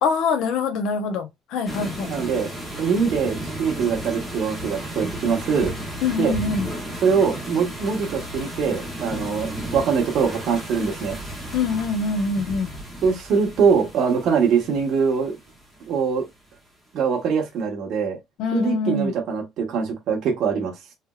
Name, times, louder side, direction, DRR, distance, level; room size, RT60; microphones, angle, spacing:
voice 1, 0.0-2.1 6.0-6.7 11.5-12.7 18.4-19.1, left 4 dB, 70° left, 0.8 m, -24 dB
sound 1, 1.7-16.2, right 1 dB, 5° left, 1.3 m, -34 dB
voice 2, 2.1-2.5 2.8-5.7 6.2-6.3 7.0-11.2 13.0-15.4 15.9-16.3 16.9-18.2 18.5-20.7, right 6 dB, 55° right, 1.0 m, -23 dB
3.2 x 3.0 x 2.3 m
cardioid pair, 150°, 0 cm